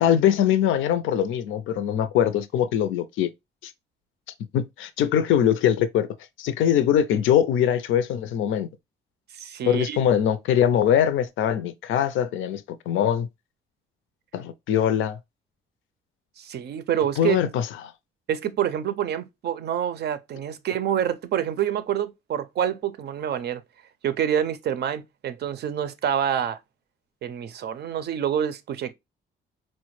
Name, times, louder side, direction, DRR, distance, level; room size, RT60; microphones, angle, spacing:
voice 1, 0.0-3.3 3.6-3.7 4.5-6.1 6.4-8.7 9.7-13.3 14.3-15.2 17.2-17.7, left 9 dB, 80° left, 0.5 m, -22 dB
voice 2, 9.3-10.0 16.4-17.4 18.3-23.6 24.0-26.6 27.2-28.9, right 9 dB, 55° right, 0.5 m, -27 dB
4.2 x 2.1 x 3.0 m
cardioid pair, 90°, 20 cm